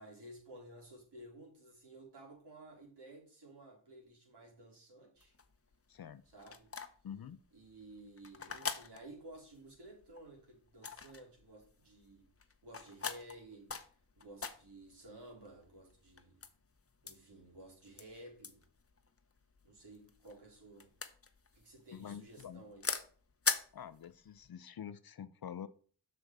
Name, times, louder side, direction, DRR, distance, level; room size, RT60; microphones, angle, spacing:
voice 1, 0.0-5.3 6.3-6.7 7.5-12.3 12.6-16.4 17.0-18.6 19.6-20.9 21.5-22.9, right 1 dB, 65° right, 3.9 m, -54 dB
sound 1, 5.2-24.5, left 5 dB, 30° left, 0.9 m, -43 dB
voice 2, 5.9-6.2 7.0-7.4 21.9-22.6 23.7-25.7, left 8 dB, 55° left, 0.6 m, -47 dB
6.6 x 6.0 x 4.7 m
cardioid pair, 50°, 44 cm